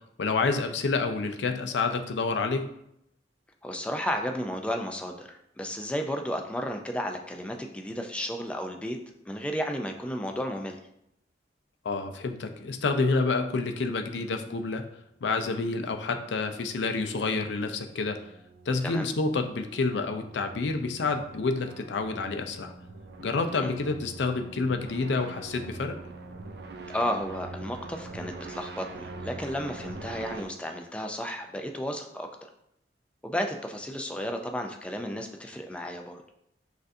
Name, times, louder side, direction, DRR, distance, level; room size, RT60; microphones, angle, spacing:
voice 1, 0.2-2.7 11.9-14.8 15.2-18.2 18.7-22.7 23.2-25.9, left 3 dB, 75° left, 6 dB, 0.4 m, -28 dB
voice 2, 3.6-9.0 9.3-10.8 18.8-19.1 23.6-23.8 26.9-32.5 33.2-36.2, equal, 5° left, 4 dB, 0.3 m, -33 dB
sound 1, 16.2-30.4, right 3 dB, 60° right, 0.4 m, -44 dB
6.3 x 2.5 x 2.6 m, 0.77 s
head